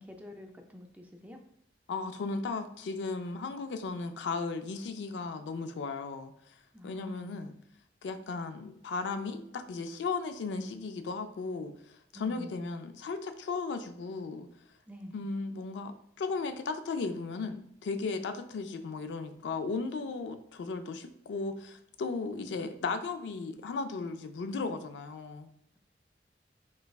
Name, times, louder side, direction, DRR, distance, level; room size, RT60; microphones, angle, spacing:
voice 1, 0.0-1.4 6.7-7.4 12.1-12.6 14.9-15.2, left 1 dB, 10° right, 3 dB, 0.3 m, -47 dB
voice 2, 1.9-6.3 6.8-7.5 8.0-11.7 12.1-14.5 15.1-25.5, left 4 dB, 80° left, 8 dB, 0.3 m, -36 dB
3.3 x 3.1 x 2.3 m, 0.73 s
head